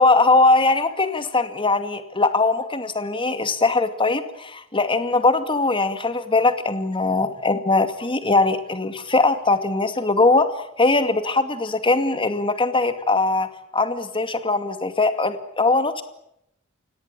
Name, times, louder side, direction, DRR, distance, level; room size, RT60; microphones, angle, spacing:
voice 1, 0.0-13.5 13.7-16.0, left 3 dB, 25° left, 9 dB, 2.3 m, -20 dB
29.5 x 17.5 x 8.9 m, 0.78 s
head